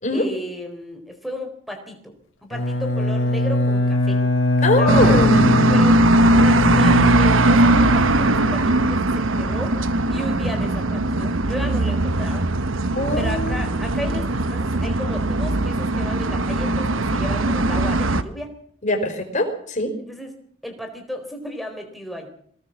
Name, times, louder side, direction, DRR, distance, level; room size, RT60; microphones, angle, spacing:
voice 1, 0.1-2.1 2.4-4.2 4.6-6.0 6.3-9.7 10.1-12.5 13.2-18.5 20.1-20.3 20.6-22.3, equal, ahead, 5 dB, 4.2 m, -34 dB
Bowed string instrument, 2.5-9.1, left 2 dB, 65° left, 3.2 m, -22 dB
voice 2, 4.6-5.5 12.9-13.6 18.8-19.9, left 1 dB, 35° left, 4 dB, 4.6 m, -22 dB
sound 1, 4.9-18.2, right 2 dB, 80° right, 1.2 m, -19 dB
23.0 x 18.0 x 7.4 m, 0.63 s
head